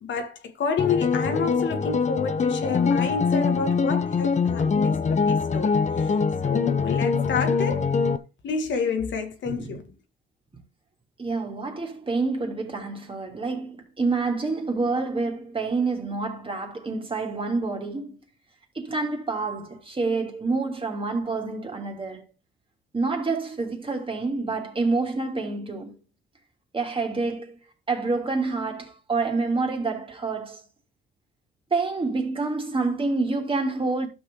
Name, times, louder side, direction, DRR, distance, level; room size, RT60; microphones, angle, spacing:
voice 1, 0.0-6.1 6.4-7.9 8.4-9.8, left 5 dB, 70° left, 1.9 m, -29 dB
sound 1, 0.8-8.2, left 5 dB, 35° left, 0.9 m, -23 dB
voice 2, 9.4-9.8 11.2-18.2 18.7-22.2 22.9-26.0 26.7-27.6 27.9-30.6 31.7-34.1, right 3 dB, 25° right, 2.9 m, -27 dB
12.0 x 6.2 x 3.7 m
cardioid pair, 90°, 20 cm